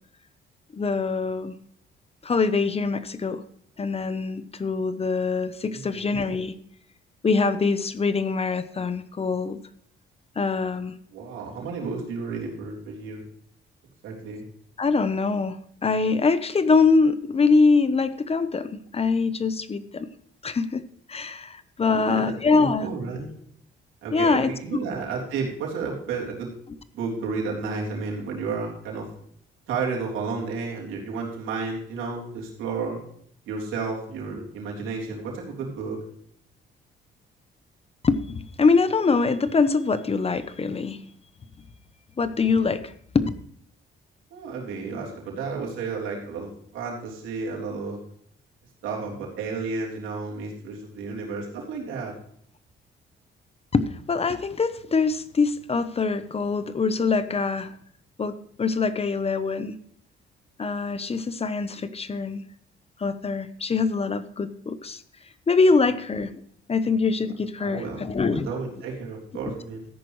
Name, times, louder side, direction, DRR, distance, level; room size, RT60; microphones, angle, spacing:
voice 1, 0.7-1.6 2.2-3.4 3.8-6.5 7.2-9.6 10.4-10.9 14.8-20.1 20.4-20.8 21.1-22.9 24.1-24.8 38.0-41.0 42.2-43.3 53.7-57.7 58.2-59.8 60.6-62.4 63.0-65.0 65.5-66.4 66.7-68.5, left 4 dB, 30° left, 13 dB, 0.9 m, -24 dB
voice 2, 5.7-6.0 11.1-13.2 14.0-14.4 21.8-23.3 24.0-26.5 26.9-29.1 29.7-33.0 33.5-36.0 44.3-48.0 48.8-52.1 67.6-69.9, right 4 dB, 90° right, -2 dB, 3.6 m, -32 dB
13.5 x 10.5 x 3.2 m, 0.64 s
cardioid pair, 90°, 20 cm